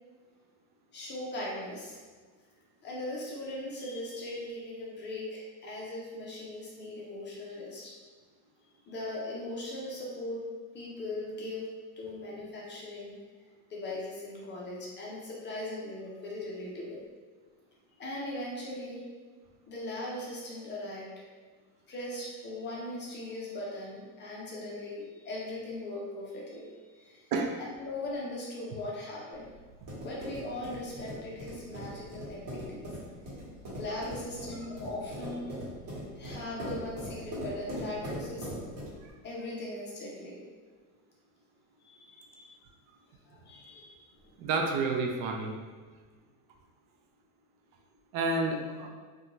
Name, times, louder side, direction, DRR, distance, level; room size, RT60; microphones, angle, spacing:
voice 1, 0.9-2.0 2.8-7.9 8.9-10.4 10.7-11.7 12.0-13.2 13.7-17.1 18.0-19.0 19.7-21.1 21.9-27.3 27.8-29.5 30.0-32.9 33.8-35.5 36.2-38.5 39.2-40.4 41.8-42.6 43.3-44.3, left 1 dB, 25° left, -4 dB, 0.4 m, -39 dB
sound 1, 29.3-39.1, equal, 45° right, 1.2 m, -40 dB
voice 2, 44.4-45.5 48.1-48.9, right 3 dB, 70° right, 2 dB, 0.6 m, -30 dB
2.5 x 2.3 x 2.9 m, 1.5 s
supercardioid pair, 125°, 45 cm